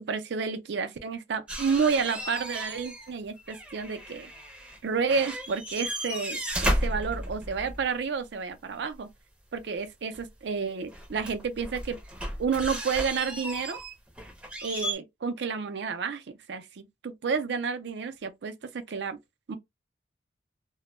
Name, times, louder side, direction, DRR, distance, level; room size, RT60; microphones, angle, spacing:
voice 1, 0.0-4.3 4.8-9.1 9.5-12.0 12.4-13.8 14.6-19.2 19.5-19.6, right 5 dB, 70° right, 0.4 m, -30 dB
sound 1, 1.5-3.1 3.4-4.8 5.1-7.8 10.1-10.2 10.9-14.9, equal, 5° right, 0.5 m, -34 dB
2.1 x 2.1 x 3.0 m
head